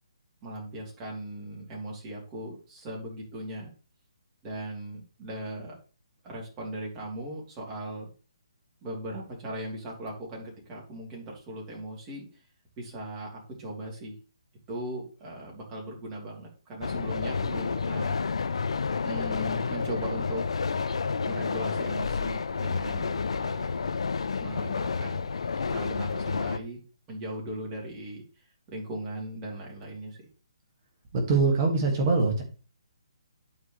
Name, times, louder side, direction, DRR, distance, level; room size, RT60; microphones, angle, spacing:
voice 1, 0.4-3.7 4.4-5.7 6.2-8.1 8.8-12.4 12.8-14.1 14.7-18.2 19.0-20.4 21.2-23.7 24.4-25.3 25.7-26.8 27.1-28.2 28.7-30.2, right 1 dB, 20° right, -2 dB, 3.2 m, -38 dB
sound 1, 16.8-26.6, left 5 dB, 70° left, 0.6 m, -30 dB
voice 2, 31.1-32.4, right 3 dB, 40° right, 2 dB, 2.2 m, -23 dB
11.0 x 4.9 x 3.3 m, 0.35 s
hypercardioid pair, 145°, 3 cm